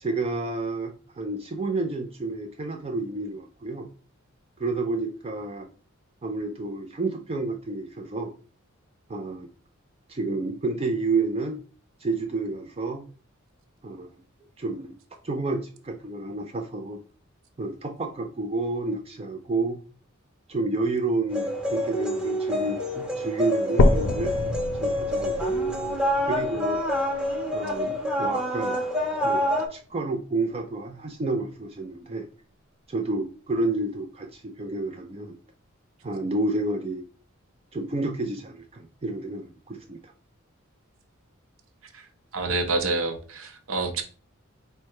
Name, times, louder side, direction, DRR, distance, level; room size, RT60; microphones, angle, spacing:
voice 1, 0.0-3.9 4.6-5.7 6.2-8.3 9.1-9.5 10.1-11.6 12.0-13.0 13.8-14.1 14.6-14.9 15.2-17.0 17.6-19.8 20.5-24.3 24.8-25.6 26.3-26.8 27.5-28.8 29.2-29.4 29.7-32.3 32.9-35.4 36.0-37.0 37.7-40.1, right 2 dB, 30° right, 3 dB, 0.4 m, -30 dB
sound 1, 21.3-29.7, equal, 5° right, 0.8 m, -27 dB
sound 2, 23.8-27.8 28.3-28.4 29.0-29.1 29.4-29.5 30.4-30.5, left 2 dB, 70° left, 0.5 m, -26 dB
voice 2, 42.3-44.0, right 3 dB, 70° right, 7 dB, 0.7 m, -27 dB
4.4 x 2.2 x 4.6 m, 0.39 s
head